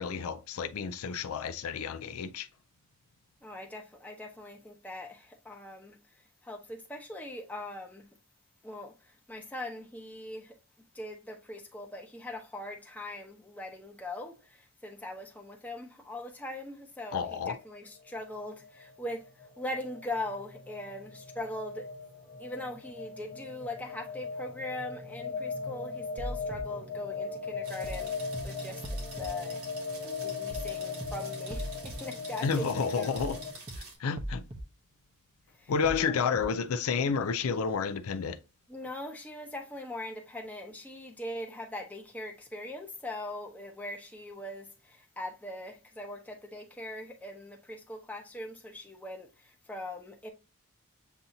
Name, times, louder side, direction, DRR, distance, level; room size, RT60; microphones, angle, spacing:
voice 1, 0.0-2.5 17.1-17.6 32.4-33.4 34.0-34.4 35.7-38.4, left 6 dB, 70° left, 0.4 m, -30 dB
voice 2, 3.4-6.0 6.4-8.1 8.6-8.9 9.3-10.6 10.9-19.2 19.6-21.9 22.4-28.8 29.2-29.6 30.1-33.2 35.6-35.7 36.1-36.3 38.7-50.3, left 1 dB, 5° left, 0.8 m, -41 dB
sound 1, 17.6-33.5, left 4 dB, 35° left, 1.3 m, -39 dB
sound 2, 26.2-26.6 27.8-28.0 28.3-28.4 28.8-29.3 30.5-30.7 31.0-31.1 31.5-31.9 33.2-33.4 33.7-33.8 34.2-34.6 35.8-36.0 36.3-36.4, equal, 25° right, 0.7 m, -38 dB
sound 3, 27.6-34.0, right 3 dB, 65° right, 1.5 m, -48 dB
7.2 x 2.7 x 2.6 m
head